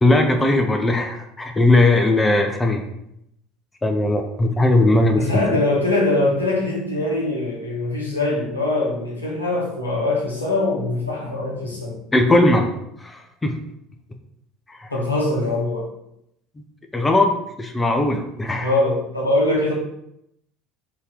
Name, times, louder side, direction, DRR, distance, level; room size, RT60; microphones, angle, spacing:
voice 1, 0.0-2.8 3.8-5.4 12.1-12.7 13.0-13.6 14.7-14.9 16.9-18.7, left 2 dB, 15° left, 4 dB, 0.5 m, -18 dB
voice 2, 5.2-12.0 14.9-15.9 18.6-19.7, left 2 dB, 85° left, -4 dB, 0.9 m, -22 dB
3.5 x 2.7 x 3.5 m, 0.78 s
figure-of-eight pair, 65°, 0 cm